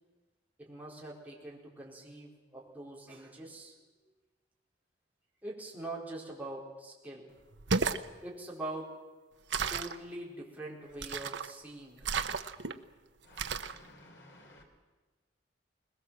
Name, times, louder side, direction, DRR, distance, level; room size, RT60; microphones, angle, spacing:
voice 1, 0.6-3.7 5.4-7.3 8.2-8.9 9.7-12.1, right 2 dB, 10° right, 4.6 m, -43 dB
sound 1, 7.5-8.1 9.5-10.0 11.0-11.5 12.0-12.7 13.4-13.8, right 5 dB, 70° right, 0.9 m, -32 dB
voice 2, 13.2-14.6, left 1 dB, 70° left, 3.7 m, -56 dB
21.5 x 20.5 x 7.7 m
head